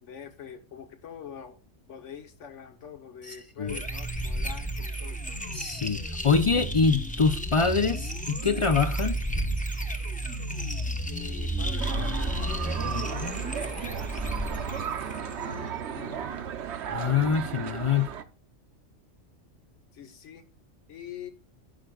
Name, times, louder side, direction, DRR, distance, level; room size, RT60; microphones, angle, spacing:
voice 1, 0.0-1.6 1.9-5.4 11.0-14.3 14.6-16.4 19.9-20.4 20.9-21.3, left 8 dB, 75° left, 1.4 m, -45 dB
voice 2, 3.2-3.8 5.5-9.2 16.9-18.1, left 5 dB, 50° left, 0.3 m, -25 dB
sound 1, 3.7-15.6, right 1 dB, 10° left, 0.7 m, -32 dB
sound 2, 11.8-18.2, right 8 dB, 65° right, 1.0 m, -35 dB
11.5 x 9.0 x 2.3 m
omnidirectional pair, 1.3 m